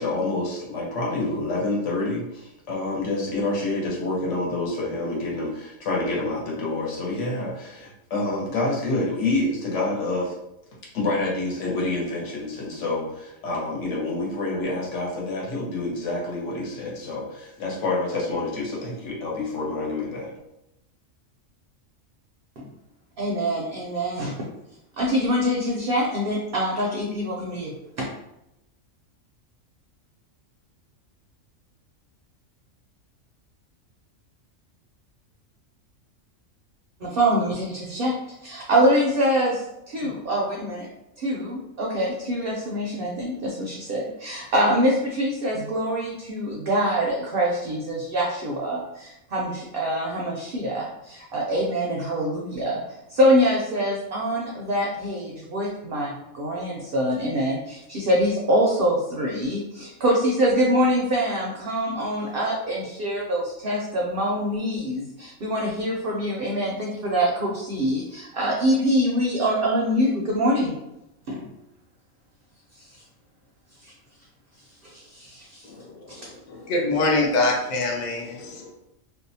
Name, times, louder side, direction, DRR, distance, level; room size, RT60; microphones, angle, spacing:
voice 1, 0.0-10.3 10.9-20.3, left 2 dB, 65° left, -3 dB, 1.1 m, -27 dB
voice 2, 23.2-24.3 25.0-27.7 28.0-28.1 37.0-40.9 41.2-52.8 53.1-70.7 71.3-71.4 74.8-75.6 76.1-76.2, equal, 65° right, -2 dB, 0.6 m, -24 dB
voice 3, 76.5-78.7, left 2 dB, 85° left, 0 dB, 0.4 m, -24 dB
2.6 x 2.1 x 2.7 m, 0.87 s
omnidirectional pair, 1.4 m